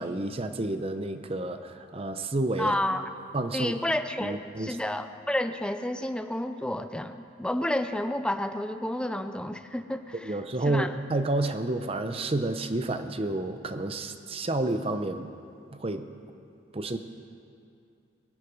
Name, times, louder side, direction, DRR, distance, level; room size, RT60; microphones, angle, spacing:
voice 1, 0.0-2.8 3.3-3.7 4.2-4.8 10.1-15.3 15.7-16.1 16.7-17.0, right 2 dB, 30° right, 8 dB, 0.7 m, -30 dB
voice 2, 2.6-3.0 3.5-10.4 10.6-10.9, left 1 dB, 5° left, 9 dB, 0.5 m, -30 dB
22.5 x 8.3 x 5.3 m, 2.5 s
head